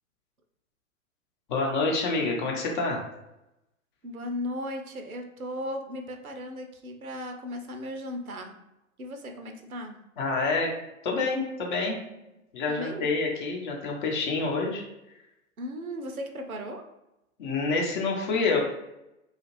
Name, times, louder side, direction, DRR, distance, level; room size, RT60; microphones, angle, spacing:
voice 1, 1.5-3.0 10.2-10.7 11.0-12.0 12.5-14.8 17.4-18.6, left 3 dB, 35° left, 0 dB, 0.7 m, -27 dB
voice 2, 4.0-8.6 9.0-10.0 12.7-13.1 15.6-16.9, left 1 dB, 85° right, 5 dB, 0.6 m, -36 dB
2.9 x 2.4 x 3.0 m, 0.91 s
figure-of-eight pair, 110°, 42 cm